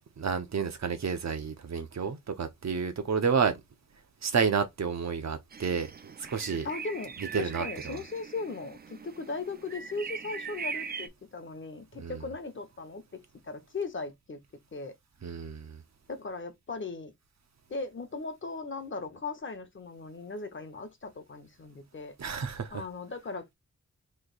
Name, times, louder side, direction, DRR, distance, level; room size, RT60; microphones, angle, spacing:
voice 1, 0.2-3.5 4.2-5.9 6.3-6.7 7.3-8.0 12.0-12.2 15.2-15.8 22.2-22.8, right 6 dB, 65° right, 0.8 m, -30 dB
sound 1, 5.5-11.1, right 5 dB, 35° right, 0.4 m, -41 dB
voice 2, 6.6-14.4 14.7-14.9 16.1-17.1 17.7-22.1 22.7-23.5, left 3 dB, 40° left, 0.8 m, -38 dB
3.2 x 2.8 x 4.0 m
wide cardioid pair, 120°, 29 cm